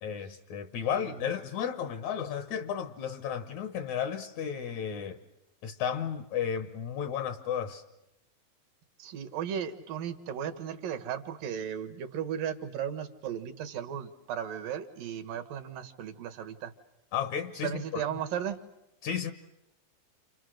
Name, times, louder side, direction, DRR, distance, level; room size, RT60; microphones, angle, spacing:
voice 1, 0.0-5.2 5.6-7.8 17.1-18.2 19.0-19.3, left 8 dB, 65° left, 2.3 m, -33 dB
voice 2, 0.9-1.3 9.0-16.7 17.6-18.6, right 9 dB, 80° right, 3.1 m, -36 dB
29.5 x 28.0 x 6.5 m
omnidirectional pair, 3.9 m